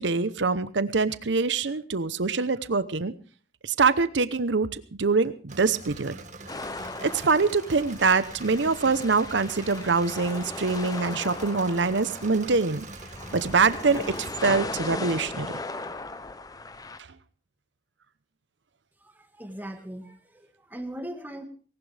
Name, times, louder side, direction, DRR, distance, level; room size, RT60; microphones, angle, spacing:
voice 1, 0.0-3.1 3.6-6.1 7.0-12.8 13.3-15.5, right 4 dB, 85° right, 14 dB, 0.9 m, -24 dB
Engine / Mechanisms, 5.5-14.3, right 3 dB, 40° right, 1.8 m, -44 dB
sound 1, 6.5-17.0, left 3 dB, 20° left, 0.8 m, -37 dB
voice 2, 19.0-21.5, right 1 dB, 10° right, 6 dB, 1.7 m, -39 dB
19.0 x 18.0 x 3.4 m, 0.38 s
head